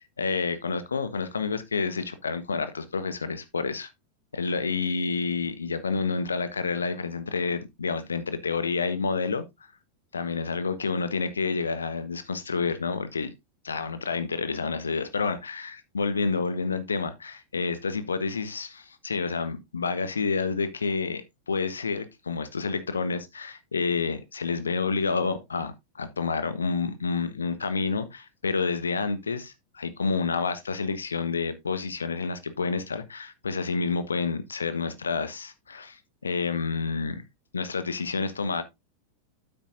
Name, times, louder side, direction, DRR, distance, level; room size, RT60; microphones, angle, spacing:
voice 1, 0.0-3.9 4.3-9.4 10.1-13.3 13.6-37.2 37.5-38.6, left 4 dB, 75° left, 1.1 m, -29 dB
9.4 x 8.5 x 2.6 m
figure-of-eight pair, 90°, 0 cm